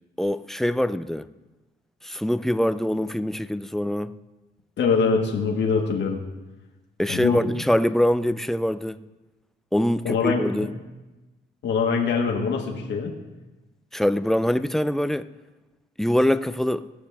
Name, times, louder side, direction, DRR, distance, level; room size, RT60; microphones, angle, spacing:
voice 1, 0.2-1.3 2.0-4.2 7.0-9.0 9.7-10.7 13.9-15.3 16.0-16.9, left 1 dB, ahead, 0.3 m, -24 dB
voice 2, 4.8-6.2 7.1-7.5 10.0-10.5 11.6-13.1, left 5 dB, 65° left, 1.6 m, -23 dB
18.0 x 6.5 x 3.5 m
cardioid pair, 90°, 20 cm